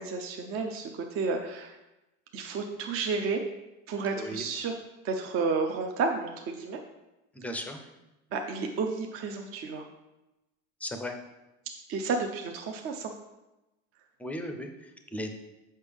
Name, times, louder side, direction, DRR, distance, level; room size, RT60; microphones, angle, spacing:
voice 1, 0.0-1.8 2.3-3.4 3.9-4.7 5.0-6.8 8.3-9.9 11.9-13.1, right 4 dB, 40° right, 3 dB, 0.6 m, -31 dB
voice 2, 4.1-4.5 7.3-7.8 10.8-11.2 14.2-15.3, left 1 dB, 5° left, 5 dB, 0.5 m, -36 dB
6.7 x 5.4 x 3.5 m, 0.99 s
cardioid pair, 135°, 35 cm